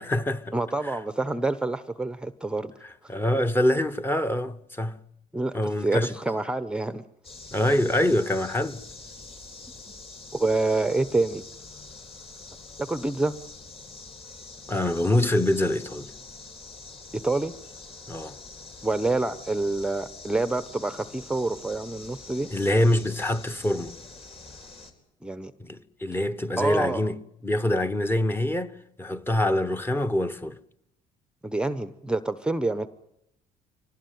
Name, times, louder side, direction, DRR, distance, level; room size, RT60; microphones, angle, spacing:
voice 1, 0.0-0.5 2.8-5.0 5.5-6.1 7.5-8.8 14.7-16.1 18.1-18.3 22.5-23.9 25.6-27.2 27.4-28.7 29.0-30.6, left 1 dB, 15° left, 1.2 m, -25 dB
voice 2, 0.5-2.7 5.3-7.0 10.3-11.4 12.8-13.3 17.1-17.5 18.8-22.5 25.2-25.5 26.6-27.0 31.4-32.9, right 2 dB, 5° right, 0.8 m, -27 dB
sound 1, 7.2-24.9, left 3 dB, 35° left, 4.4 m, -45 dB
24.0 x 18.5 x 9.4 m
cardioid pair, 110°, 17 cm